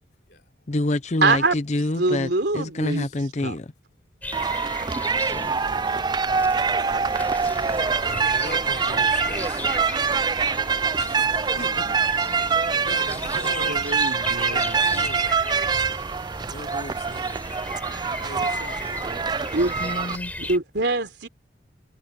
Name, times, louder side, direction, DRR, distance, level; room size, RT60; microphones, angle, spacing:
voice 1, 0.7-3.7 5.3-5.5 19.8-20.3, left 2 dB, 40° left, 0.6 m, -27 dB
voice 2, 1.2-1.6 2.0-3.1 3.4-3.6 13.7-15.1 19.5-19.8 20.4-21.3, right 3 dB, 70° right, 3.7 m, -24 dB
voice 3, 2.8-3.2 7.6-9.7 10.9-11.9 12.2-13.8 14.5-15.9 16.5-17.5 18.2-19.2, left 2 dB, 60° left, 3.4 m, -40 dB
sound 1, 4.2-20.6, left 1 dB, 10° left, 6.8 m, -36 dB
sound 2, 4.3-20.2, right 5 dB, 25° right, 0.3 m, -24 dB
Wind instrument woodwind instrument, 8.9-13.0, right 1 dB, 40° right, 1.9 m, -45 dB
head